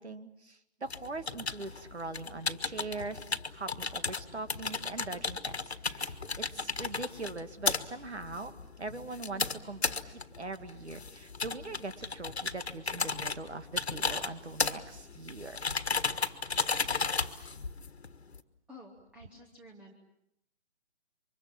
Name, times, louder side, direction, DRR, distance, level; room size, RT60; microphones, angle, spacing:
voice 1, 0.0-3.2 3.5-9.8 10.1-15.7, right 3 dB, 70° right, 10 dB, 2.2 m, -42 dB
sound 1, 0.9-18.4, left 4 dB, 65° left, 1.6 m, -35 dB
voice 2, 18.7-19.9, left 1 dB, 5° right, 0 dB, 1.0 m, -51 dB
28.5 x 25.0 x 7.3 m, 0.78 s
figure-of-eight pair, 140°, 34 cm